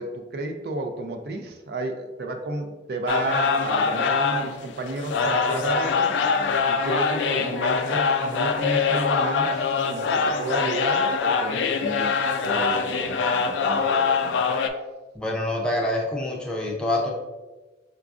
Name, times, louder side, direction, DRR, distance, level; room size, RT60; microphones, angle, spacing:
voice 1, 0.0-6.1 6.7-12.2 12.4-14.3, right 2 dB, 60° right, 5 dB, 0.3 m, -31 dB
sound 1, 3.1-14.7, left 5 dB, 85° left, 0.3 m, -24 dB
voice 2, 15.2-17.1, left 1 dB, 5° left, -2 dB, 0.4 m, -26 dB
4.8 x 2.3 x 2.4 m, 1.2 s
head